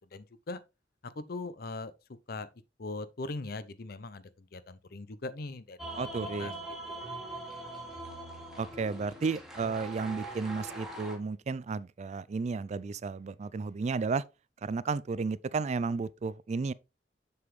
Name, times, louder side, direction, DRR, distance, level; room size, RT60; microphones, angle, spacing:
voice 1, 0.1-0.6 1.0-1.9 2.3-2.5 2.8-6.5 6.9-7.1, left 3 dB, 60° left, 0.7 m, -40 dB
sound 1, 5.8-11.2, right 2 dB, 5° right, 1.7 m, -42 dB
voice 2, 5.9-6.6 8.6-14.2 14.6-16.7, right 4 dB, 40° right, 0.3 m, -33 dB
7.0 x 6.7 x 3.2 m
head